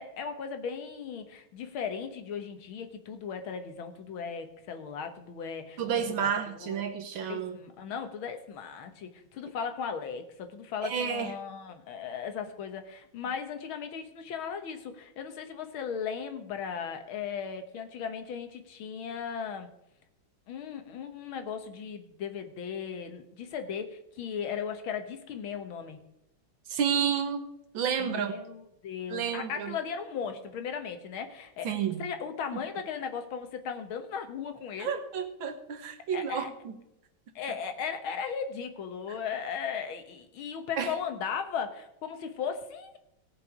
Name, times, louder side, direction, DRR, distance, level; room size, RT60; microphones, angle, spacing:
voice 1, 0.0-5.8 6.2-6.3 6.6-6.8 7.2-19.7 20.5-26.0 28.0-31.7 32.0-35.0 36.1-36.5 37.4-43.0, left 7 dB, 90° left, 7 dB, 2.0 m, -37 dB
voice 2, 5.8-7.6 10.8-11.4 26.7-27.4 27.7-28.3 29.1-29.8 31.6-32.0 34.8-36.7 40.8-40.9, right 7 dB, 75° right, 7 dB, 2.0 m, -30 dB
17.5 x 6.9 x 4.9 m, 0.83 s
omnidirectional pair, 2.2 m